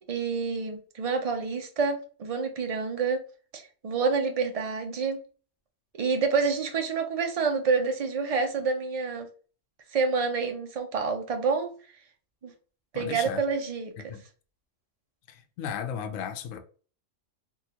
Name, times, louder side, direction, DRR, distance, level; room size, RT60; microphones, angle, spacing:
voice 1, 0.1-3.2 3.5-5.2 6.0-9.3 9.9-11.7 12.4-12.5 12.9-14.1, right 4 dB, 55° right, 0.4 m, -28 dB
voice 2, 12.9-13.4 14.1-14.2 15.3-16.6, left 8 dB, 75° left, 0.9 m, -35 dB
3.7 x 2.4 x 2.8 m
omnidirectional pair, 1.3 m